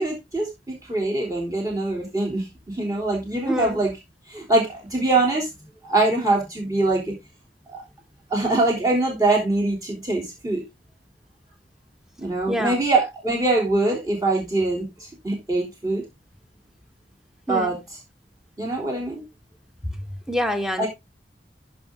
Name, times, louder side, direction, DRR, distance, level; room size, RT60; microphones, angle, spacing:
voice 1, 0.0-3.9 4.3-5.5 5.8-7.1 7.7-7.8 8.3-10.6 12.2-16.0 17.5-17.8 18.6-19.2 20.8-20.9, right 2 dB, 20° right, 3.4 m, -23 dB
voice 2, 3.5-3.8 12.5-12.8 17.5-17.7 20.3-20.9, equal, 5° right, 1.3 m, -26 dB
14.0 x 5.2 x 3.8 m
head